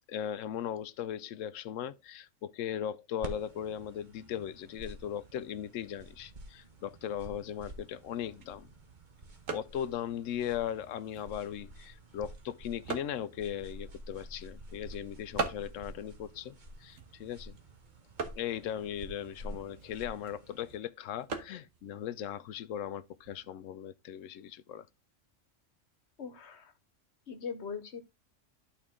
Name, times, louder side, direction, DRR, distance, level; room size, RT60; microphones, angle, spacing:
voice 1, 0.1-8.7 9.5-16.5 16.8-17.6 18.4-24.9, left 10 dB, 80° left, 1.0 m, -38 dB
sound 1, 3.2-20.8, right 1 dB, 40° right, 1.4 m, -49 dB
sound 2, 7.9-23.5, right 4 dB, 85° right, 1.6 m, -45 dB
voice 2, 26.2-26.7 27.3-28.0, left 6 dB, 60° left, 1.3 m, -40 dB
11.5 x 4.6 x 3.6 m
omnidirectional pair, 1.3 m